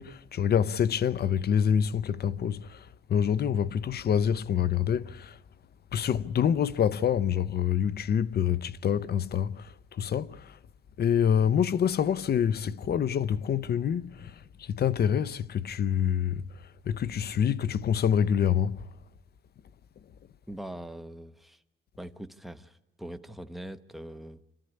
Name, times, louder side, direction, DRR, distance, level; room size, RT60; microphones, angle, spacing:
voice 1, 0.0-5.4 5.9-10.6 11.0-16.5 16.9-18.8, left 8 dB, 55° left, 0.7 m, -26 dB
voice 2, 20.5-21.6 22.0-24.4, right 1 dB, ahead, 1.1 m, -42 dB
26.5 x 13.5 x 9.8 m
cardioid pair, 90°, 20 cm